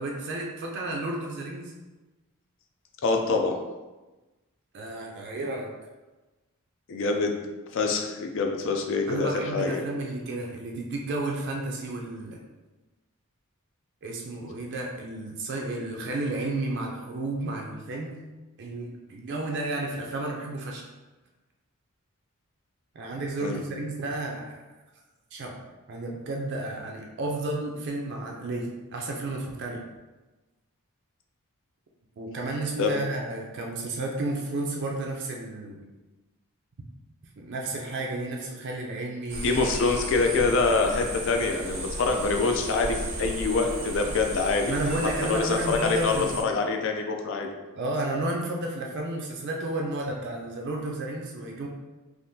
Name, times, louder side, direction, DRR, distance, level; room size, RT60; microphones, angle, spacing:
voice 1, 0.0-1.7 4.7-5.7 9.1-12.4 14.0-18.2 18.6-20.8 22.9-24.6 25.3-25.6 25.9-29.8 32.2-35.8 37.4-39.5 44.7-46.5 47.8-51.7, right 2 dB, 50° right, 0 dB, 0.4 m, -32 dB
voice 2, 3.0-3.6 6.9-7.4 7.7-9.8 23.4-23.6 32.8-32.9 39.4-47.5, left 4 dB, 55° left, 3 dB, 0.4 m, -25 dB
sound 1, 39.3-46.4, right 1 dB, 90° right, 0.7 m, -35 dB
3.5 x 2.5 x 2.6 m, 1.2 s
head